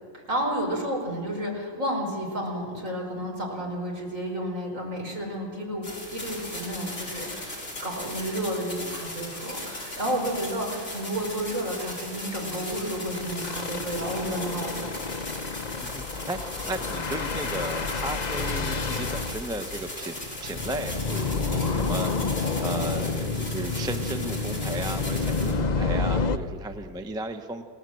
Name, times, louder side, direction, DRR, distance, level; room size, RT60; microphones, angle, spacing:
voice 1, 0.1-15.0, right 1 dB, 40° right, 0 dB, 5.4 m, -31 dB
sound 1, 5.8-25.5, left 1 dB, 35° left, 5.6 m, -38 dB
sound 2, 9.7-9.8 10.2-10.3 10.6-10.7 11.0-11.2 12.5-26.4, left 4 dB, 55° left, 0.5 m, -29 dB
voice 2, 15.8-27.6, right 1 dB, 5° right, 7 dB, 0.5 m, -35 dB
28.5 x 18.5 x 7.8 m, 2.1 s
omnidirectional pair, 2.1 m